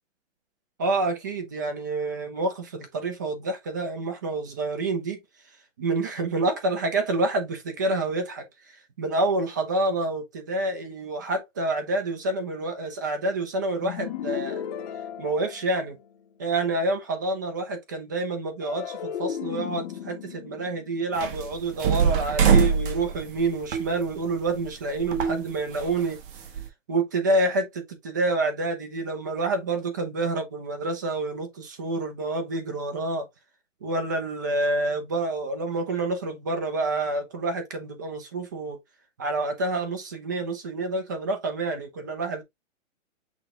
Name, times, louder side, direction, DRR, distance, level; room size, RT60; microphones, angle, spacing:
voice 1, 0.8-5.2 5.8-8.4 9.0-14.6 15.2-16.0 16.4-26.2 26.9-33.2 33.8-38.8 39.2-42.4, right 2 dB, 15° right, 0.3 m, -28 dB
sound 1, 13.8-16.2 18.6-21.9, left 9 dB, 35° left, 0.7 m, -36 dB
sound 2, 21.2-24.7 25.0-26.7, right 6 dB, 45° right, 1.1 m, -23 dB
6.0 x 2.1 x 3.6 m
hypercardioid pair, 140°, 39 cm